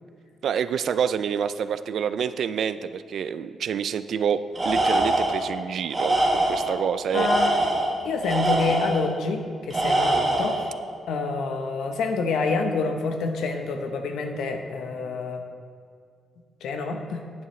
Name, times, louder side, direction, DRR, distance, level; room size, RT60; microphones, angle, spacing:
voice 1, 0.4-7.3, right 7 dB, 55° right, 13 dB, 0.3 m, -27 dB
Tools, 4.5-5.4 5.9-6.7 7.1-9.0 9.7-10.6, right 1 dB, 15° right, 1.5 m, -23 dB
voice 2, 7.1-7.6 8.0-10.7 11.1-15.4 16.6-17.2, left 4 dB, 85° left, 5 dB, 0.9 m, -27 dB
10.5 x 9.1 x 3.2 m, 2.1 s
wide cardioid pair, 170°, 0 cm